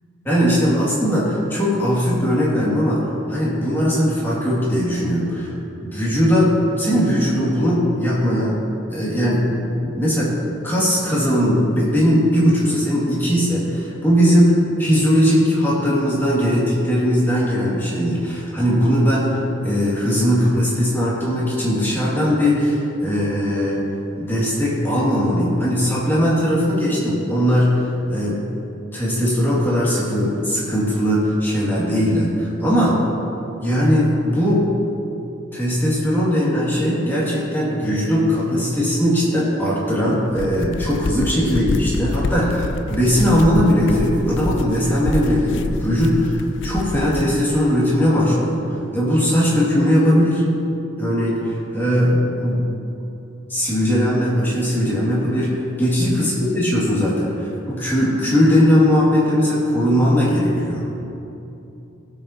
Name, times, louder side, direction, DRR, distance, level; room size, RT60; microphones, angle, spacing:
voice 1, 0.2-5.5 5.8-8.6 8.9-10.3 10.6-14.5 14.8-23.8 24.2-28.4 28.9-32.9 33.6-34.6 35.5-50.4 51.0-52.6 53.5-61.0, equal, 10° left, -7 dB, 2.2 m, -19 dB
sound 1, 40.2-47.4, left 3 dB, 60° left, 0.4 m, -27 dB
18.0 x 6.6 x 2.8 m, 2.9 s
head